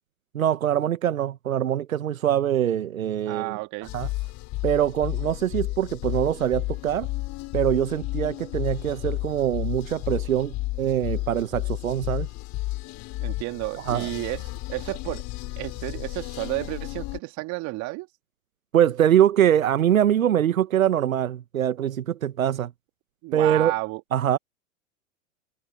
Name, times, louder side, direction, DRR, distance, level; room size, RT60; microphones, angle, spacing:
voice 1, 0.3-3.6 3.9-4.1 4.6-7.1 7.5-12.3 13.8-14.1 18.7-22.7 23.3-23.7 24.1-24.4, right 10 dB, 80° right, 1.1 m, -23 dB
voice 2, 3.3-3.9 13.2-14.4 14.7-15.3 15.6-18.1 23.2-24.0, right 24 dB, 45° right, 2.2 m, -31 dB
sound 1, 3.8-17.2, left 20 dB, 45° left, 5.9 m, -32 dB
hypercardioid pair, 100°, 41 cm